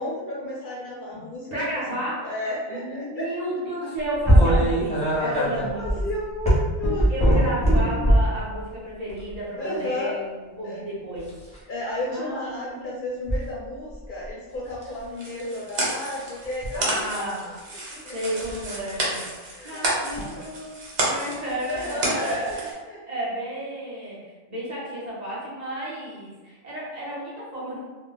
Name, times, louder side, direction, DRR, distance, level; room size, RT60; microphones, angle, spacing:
voice 1, 0.0-1.8 2.2-3.2 3.8-3.9 5.2-7.1 9.6-10.2 10.6-10.8 11.7-18.4 19.5-20.4 21.7-23.0, left 1 dB, 60° left, -4 dB, 0.6 m, -33 dB
voice 2, 1.5-2.3 2.7-6.0 7.1-11.3 11.6-11.7 12.1-12.9 16.7-17.4 18.1-19.2 19.6-20.8 21.0-22.7 23.1-24.2 24.5-27.8, right 1 dB, 40° right, -7 dB, 0.7 m, -32 dB
sound 1, 4.2-8.4 9.1-9.4 11.2-11.6 13.3-13.4 13.9-14.3 14.7-15.0 16.4-16.8 18.4-18.6 20.1-20.2 21.8-21.9 22.5-22.6, equal, 5° left, 0.7 m, -21 dB
sound 2, 15.1-22.7, right 1 dB, 75° right, 1.1 m, -31 dB
2.3 x 2.0 x 3.8 m, 1.3 s
omnidirectional pair, 1.2 m